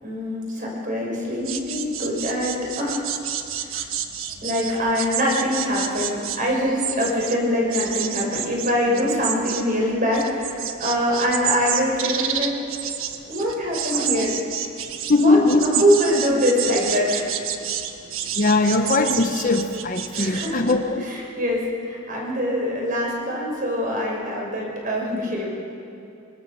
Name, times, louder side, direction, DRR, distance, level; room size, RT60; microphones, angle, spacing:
voice 1, 0.0-3.0 4.4-12.5 13.3-14.3 15.2-17.3 20.1-20.7 21.0-25.5, equal, 35° right, -2 dB, 6.2 m, -24 dB
sound 1, 1.4-7.4 7.7-20.7, right 9 dB, 65° right, 1.5 m, -29 dB
voice 2, 15.1-15.6 18.3-21.1, left 3 dB, 35° left, 6 dB, 1.0 m, -20 dB
25.0 x 24.5 x 7.1 m, 2.7 s
head